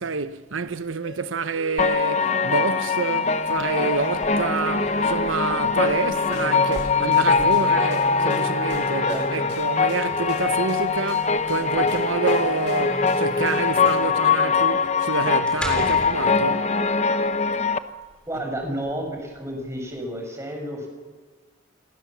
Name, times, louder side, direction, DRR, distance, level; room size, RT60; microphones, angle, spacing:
voice 1, 0.0-16.7, right 4 dB, 80° right, 0.8 m, -28 dB
sound 1, 1.0-14.0, left 1 dB, 55° left, 5.4 m, -36 dB
sound 2, 1.8-17.8, left 5 dB, 35° left, 1.0 m, -22 dB
sound 3, 3.5-20.0, equal, 5° left, 3.6 m, -41 dB
voice 2, 9.0-9.5 18.3-20.9, right 1 dB, 15° right, 5.9 m, -31 dB
28.0 x 22.5 x 7.3 m
head